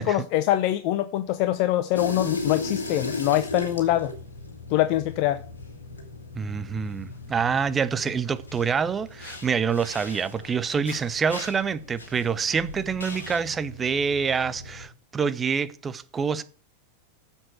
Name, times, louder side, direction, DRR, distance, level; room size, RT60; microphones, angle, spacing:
voice 1, 0.0-4.1 4.7-5.4, left 14 dB, 45° left, 0.7 m, -24 dB
sound 1, 1.9-14.9, left 3 dB, 70° left, 2.5 m, -37 dB
voice 2, 6.3-16.4, right 6 dB, 20° right, 0.8 m, -26 dB
7.7 x 7.4 x 7.8 m
figure-of-eight pair, 90°, 0 cm